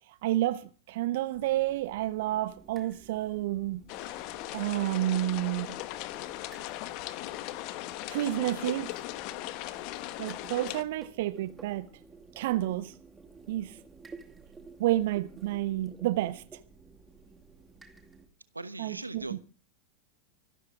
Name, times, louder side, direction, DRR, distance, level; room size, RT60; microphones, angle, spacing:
voice 1, 0.2-4.1 4.5-5.8 8.1-8.9 10.2-11.9 12.4-12.9 13.5-13.8 14.8-16.4 18.8-19.4, right 15 dB, 55° right, 1.1 m, -30 dB
sound 1, 1.3-18.3, right 4 dB, 15° right, 2.4 m, -54 dB
sound 2, 3.9-10.8, left 16 dB, 45° left, 1.2 m, -38 dB
voice 2, 18.5-19.4, right 2 dB, 80° right, 1.2 m, -39 dB
25.0 x 13.0 x 3.6 m
figure-of-eight pair, 90°, 0 cm